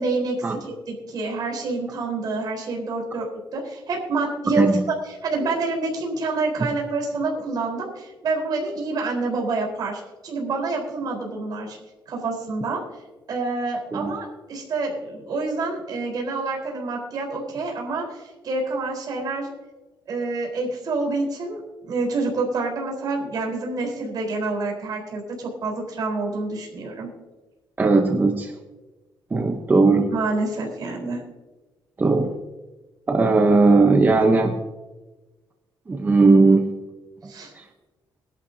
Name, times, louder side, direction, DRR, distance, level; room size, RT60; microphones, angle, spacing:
voice 1, 0.0-11.8 12.1-12.8 13.3-19.5 20.1-27.1 30.1-31.2 37.3-37.5, right 3 dB, 55° right, -1 dB, 4.1 m, -27 dB
voice 2, 27.8-28.5 29.3-30.1 32.0-32.3 33.1-34.6 35.9-36.6 37.6-37.7, right 3 dB, 20° right, 4 dB, 0.9 m, -17 dB
21.0 x 11.5 x 2.8 m, 1.2 s
cardioid pair, 140°, 8 cm